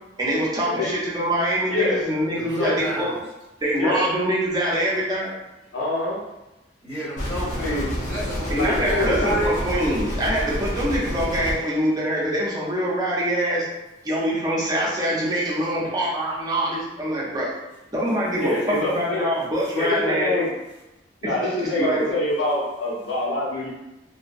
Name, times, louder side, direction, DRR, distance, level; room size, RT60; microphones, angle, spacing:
voice 1, 0.2-3.1 3.6-5.3 8.5-13.7 14.0-17.5 17.9-20.5 21.2-21.3 21.6-22.0, equal, 20° right, -5 dB, 0.6 m, -24 dB
voice 2, 1.7-2.0 2.6-2.8 3.8-4.0 5.7-6.2 7.6-7.9 8.5-9.5 18.4-19.2 19.8-20.5 21.2-23.7, left 1 dB, 80° left, -6 dB, 0.9 m, -25 dB
voice 3, 2.3-3.2 6.8-9.2, equal, 15° left, -8 dB, 0.9 m, -33 dB
sound 1, 7.2-11.6, equal, 45° left, 0.6 m, -28 dB
2.6 x 2.1 x 2.4 m, 0.99 s
head